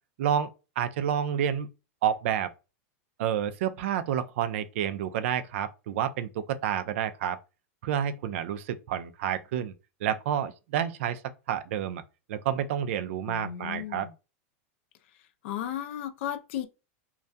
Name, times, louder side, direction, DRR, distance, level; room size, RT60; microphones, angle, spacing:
voice 1, 0.2-0.5 0.8-1.7 2.0-2.5 3.2-7.4 7.8-9.7 10.0-11.2 11.5-12.0 12.3-14.1, right 9 dB, 60° right, 0.3 m, -29 dB
voice 2, 13.3-14.1 15.4-16.7, left 10 dB, 55° left, 0.4 m, -34 dB
2.3 x 2.2 x 2.5 m
supercardioid pair, 160°, 8 cm